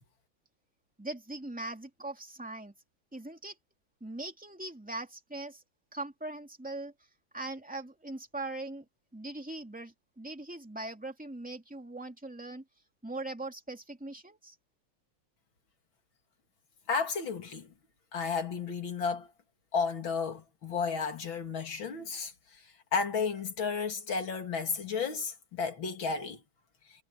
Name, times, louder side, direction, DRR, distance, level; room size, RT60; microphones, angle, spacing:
voice 1, 1.0-2.7 3.1-3.6 4.0-5.6 5.9-6.9 7.3-8.8 9.1-12.6 13.0-14.5, right 2 dB, 5° right, 2.6 m, -40 dB
voice 2, 16.9-17.7 18.1-19.3 19.7-22.3 22.9-26.4, left 5 dB, 80° left, 3.3 m, -32 dB
omnidirectional pair, 2.1 m